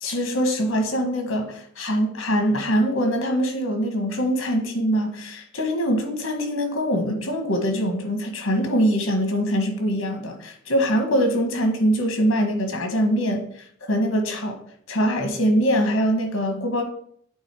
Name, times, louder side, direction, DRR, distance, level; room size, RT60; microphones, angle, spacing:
voice 1, 0.0-13.5 13.8-14.6 14.9-16.8, equal, 80° left, 4 dB, 1.6 m, -23 dB
8.2 x 4.2 x 4.8 m, 0.64 s
head